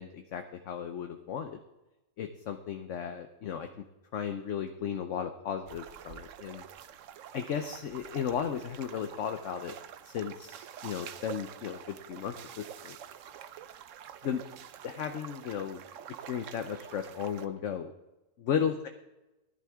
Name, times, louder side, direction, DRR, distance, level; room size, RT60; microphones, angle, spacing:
voice 1, 0.0-1.6 2.2-3.7 4.1-6.6 7.3-9.7 10.0-13.0 14.2-14.5 14.8-15.8 16.1-17.9 18.4-18.9, left 8 dB, 60° left, 7 dB, 1.0 m, -35 dB
sound 1, 5.6-17.5, right 9 dB, 65° right, 0.9 m, -47 dB
17.0 x 11.0 x 3.6 m, 1.0 s
omnidirectional pair, 1.6 m